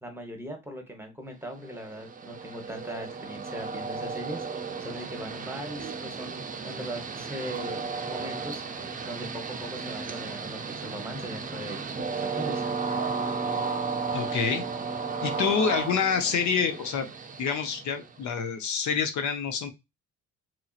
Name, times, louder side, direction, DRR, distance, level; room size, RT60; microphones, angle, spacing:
voice 1, 0.0-4.4 4.8-7.8 8.1-8.6 9.0-12.6, equal, 10° right, 3 dB, 0.9 m, -39 dB
Train, 1.6-18.4, right 4 dB, 25° right, 0.5 m, -34 dB
voice 2, 14.1-14.6 15.2-17.1 17.4-19.7, left 6 dB, 70° left, 7 dB, 0.7 m, -27 dB
3.0 x 2.7 x 2.4 m, 0.23 s
cardioid pair, 90°, 30 cm